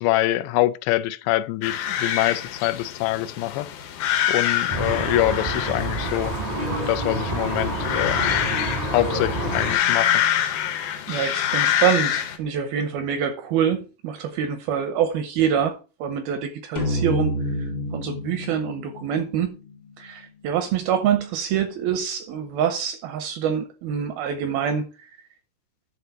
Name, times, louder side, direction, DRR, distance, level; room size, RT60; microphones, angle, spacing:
voice 1, 0.0-3.7 4.3-6.4 6.9-8.2 8.9-10.2, left 16 dB, 85° left, 2.7 m, -24 dB
sound 1, 1.6-12.4, left 10 dB, 70° left, 2.5 m, -26 dB
Traffic noise roadway noise, 4.7-9.7, right 1 dB, 35° right, 0.6 m, -28 dB
voice 2, 11.1-15.7 16.0-17.3 17.6-19.6 20.0-24.9, right 8 dB, 80° right, 2.3 m, -25 dB
sound 2, 16.8-20.3, equal, 55° left, 1.3 m, -29 dB
10.5 x 4.0 x 5.4 m
omnidirectional pair, 5.0 m